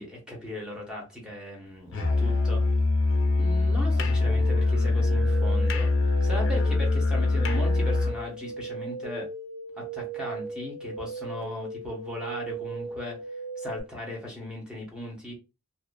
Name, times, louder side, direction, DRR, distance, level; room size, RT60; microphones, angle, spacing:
voice 1, 0.0-2.6 3.4-5.9 6.2-9.3 9.8-13.2 13.6-15.3, left 1 dB, 5° right, -2 dB, 0.8 m, -37 dB
Musical instrument, 1.9-8.2, left 3 dB, 55° left, 0.4 m, -23 dB
sound 1, 4.3-13.8, right 4 dB, 60° right, 0.9 m, -37 dB
2.5 x 2.3 x 2.2 m, 0.28 s
head